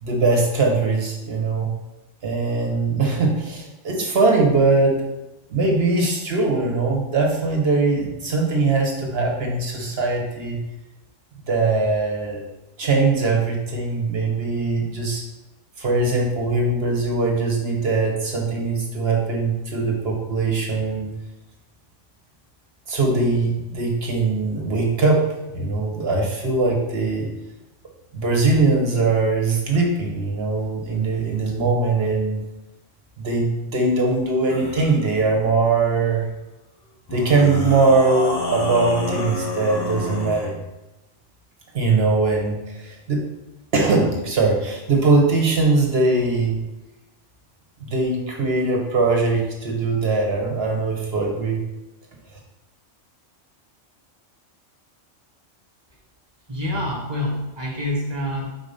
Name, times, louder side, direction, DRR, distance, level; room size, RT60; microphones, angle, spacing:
voice 1, 0.0-1.7 2.2-5.0 5.5-10.6 11.5-12.4 12.8-15.2 15.8-21.1 22.9-25.2 25.5-27.3 28.1-32.4 33.2-36.3 37.1-40.5 41.7-43.2 43.7-46.6 47.8-51.6, right 3 dB, 55° right, 0 dB, 1.3 m, -21 dB
sound 1, 34.5-35.0 37.1-40.5, left 1 dB, 20° left, 0.8 m, -28 dB
voice 2, 56.5-58.5, left 1 dB, 20° right, -2 dB, 1.4 m, -26 dB
4.5 x 4.1 x 5.1 m, 0.98 s
omnidirectional pair, 1.3 m